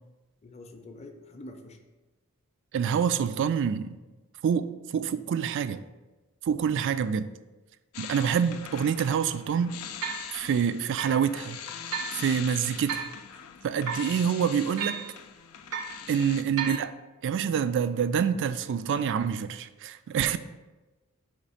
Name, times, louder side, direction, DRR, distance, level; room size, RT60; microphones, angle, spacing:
voice 1, 0.4-1.8 12.1-12.3 16.0-16.2, left 1 dB, 30° left, 0.6 m, -47 dB
voice 2, 2.7-3.9 4.4-5.8 6.5-7.3 8.0-9.8 10.3-11.6 12.2-13.1 13.6-15.0 16.1-16.9 17.2-20.4, right 7 dB, 55° right, 0.3 m, -26 dB
sound 1, 7.9-16.4, left 8 dB, 90° left, 0.5 m, -42 dB
sound 2, 8.3-8.4 9.1-9.2 10.0-10.3 11.0-11.2 11.9-12.2 12.9-13.2 13.9-14.1 14.8-15.1 15.7-16.0 16.6-16.9, right 6 dB, 80° right, 0.7 m, -33 dB
5.1 x 3.3 x 5.6 m
head